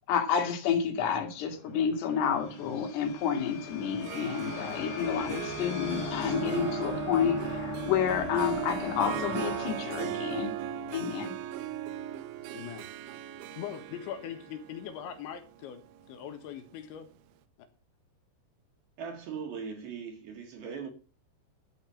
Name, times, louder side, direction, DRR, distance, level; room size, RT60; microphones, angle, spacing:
voice 1, 0.1-10.5 10.9-11.3, left 7 dB, 65° left, 3.9 m, -30 dB
sound 1, 1.4-11.7, left 5 dB, 50° left, 2.4 m, -40 dB
Harp, 3.9-16.8, right 14 dB, 85° right, 3.2 m, -38 dB
voice 2, 12.5-12.9 13.5-17.1, left 9 dB, 80° left, 3.9 m, -41 dB
voice 3, 19.0-20.9, right 6 dB, 65° right, 3.1 m, -39 dB
12.5 x 6.1 x 7.5 m
omnidirectional pair, 5.3 m